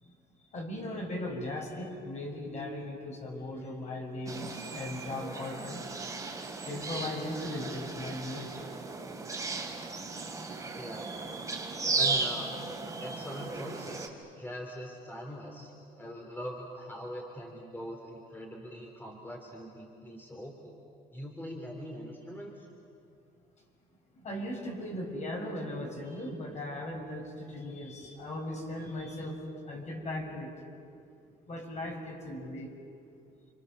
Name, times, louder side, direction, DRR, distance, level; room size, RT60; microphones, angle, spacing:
voice 1, 0.5-5.8 6.7-8.5 24.1-29.4 29.6-30.5 31.5-32.7, left 1 dB, 45° left, 0 dB, 6.2 m, -38 dB
sound 1, 4.3-14.1, right 3 dB, 20° right, 3.4 m, -36 dB
voice 2, 10.8-11.1 11.9-12.5 13.0-20.8 21.1-22.7, equal, 10° left, 0 dB, 3.5 m, -42 dB
30.0 x 25.5 x 6.8 m, 2.5 s
cardioid pair, 110°, 17 cm